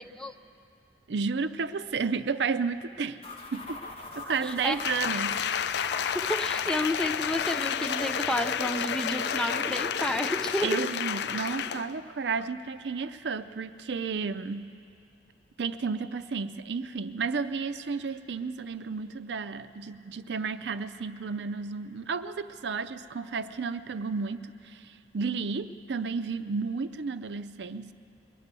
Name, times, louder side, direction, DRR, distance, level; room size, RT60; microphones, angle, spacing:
voice 1, 1.1-3.2 3.5-3.8 4.2-5.4 10.6-14.7 15.6-27.9, right 5 dB, 75° right, 11 dB, 0.5 m, -32 dB
sound 1, 3.2-11.8, left 2 dB, 35° left, 1.2 m, -41 dB
voice 2, 4.4-4.8 6.1-10.9, left 1 dB, 5° left, 7 dB, 0.4 m, -31 dB
Applause, 4.8-11.9 12.4-12.5, left 8 dB, 65° left, 0.3 m, -31 dB
22.0 x 9.4 x 6.8 m, 2.5 s
head